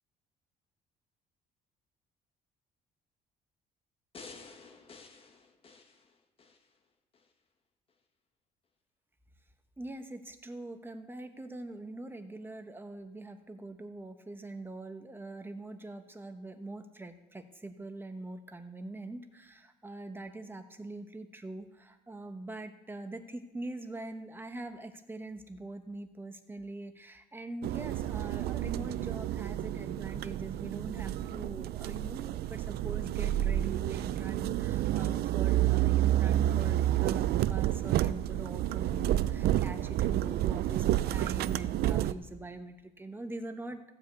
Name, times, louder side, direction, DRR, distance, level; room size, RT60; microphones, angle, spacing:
sound 1, 4.1-6.6 7.1-7.2, left 4 dB, 35° left, 1.4 m, -51 dB
voice 1, 9.8-43.8, right 2 dB, 10° right, 7 dB, 1.0 m, -43 dB
sound 2, 27.6-42.1, right 13 dB, 70° right, 0.5 m, -30 dB
15.0 x 5.2 x 8.1 m, 1.0 s
cardioid pair, 110°, 17 cm